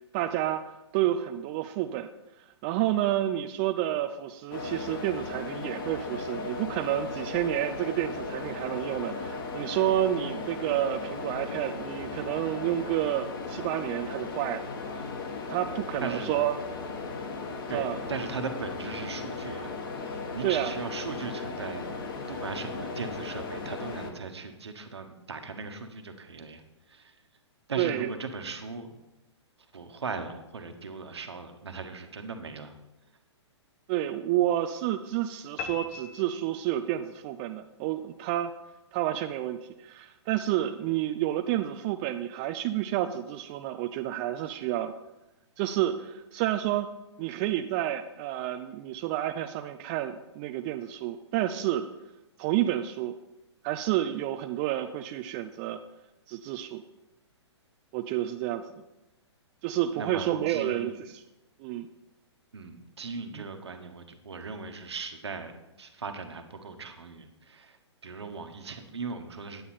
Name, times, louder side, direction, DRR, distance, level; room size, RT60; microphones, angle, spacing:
voice 1, 0.1-2.1 2.6-14.7 14.9-15.1 15.5-16.6 17.7-18.0 20.4-20.7 27.8-28.1 33.9-38.5 38.9-44.9 45.6-46.9 47.2-51.9 52.4-53.2 53.6-55.8 56.3-56.8 57.9-58.6 59.6-61.2 61.6-61.9 63.3-63.4, right 13 dB, 25° right, 8 dB, 0.3 m, -30 dB
sound 1, 4.5-24.1, left 3 dB, 50° left, 1.3 m, -36 dB
voice 2, 17.7-21.9 22.3-26.6 26.9-27.2 27.7-29.0 29.7-32.8 60.0-61.0 62.5-67.8 68.0-69.7, right 4 dB, 65° right, 6 dB, 1.2 m, -38 dB
sound 2, 35.6-37.1, left 6 dB, 35° left, 0.8 m, -40 dB
9.1 x 8.4 x 4.2 m, 0.97 s
figure-of-eight pair, 120°, 15 cm